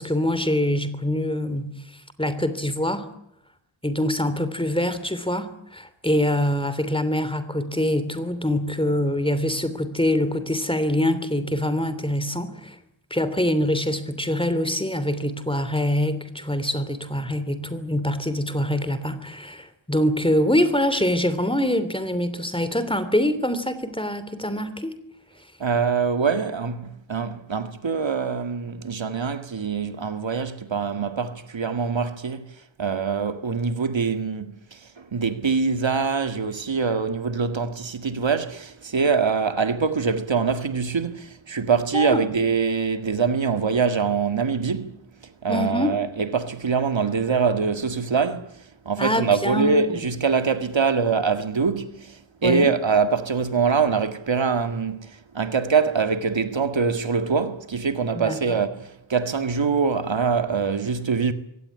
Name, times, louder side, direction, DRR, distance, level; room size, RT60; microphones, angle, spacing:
voice 1, 0.0-3.1 3.8-12.8 13.1-24.9 41.9-42.2 45.5-46.0 49.0-50.0 52.4-52.7 58.1-58.6, left 1 dB, 10° left, 3.1 m, -24 dB
voice 2, 25.6-32.5 32.8-45.0 45.4-48.5 48.9-61.3, right 5 dB, 75° right, 2.0 m, -24 dB
23.5 x 17.5 x 9.9 m
wide cardioid pair, 75°, 45 cm